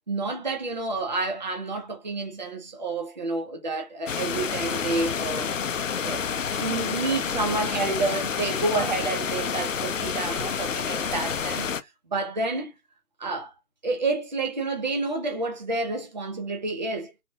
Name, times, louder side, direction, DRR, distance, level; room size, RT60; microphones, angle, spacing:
voice 1, 0.1-5.5 6.0-6.2 6.6-12.7 13.2-13.5 13.8-17.1, right 3 dB, 30° right, 0.7 m, -29 dB
sound 1, 4.1-11.8, left 7 dB, 60° left, 0.5 m, -29 dB
3.4 x 2.4 x 2.7 m
figure-of-eight pair, 155°, 44 cm